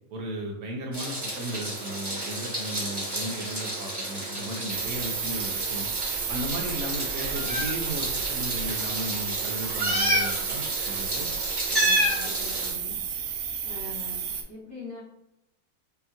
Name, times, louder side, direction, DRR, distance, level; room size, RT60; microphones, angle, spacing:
voice 1, 0.1-5.9 6.3-11.3, right 1 dB, 85° right, 0 dB, 1.2 m, -35 dB
Meow, 0.9-12.7, right 1 dB, 20° right, 0.8 m, -30 dB
sound 1, 4.7-14.4, right 7 dB, 70° right, 0.8 m, -32 dB
voice 2, 11.7-13.0 13.6-15.0, left 3 dB, 70° left, -11 dB, 1.9 m, -42 dB
5.3 x 2.2 x 2.8 m, 0.87 s
omnidirectional pair, 1.5 m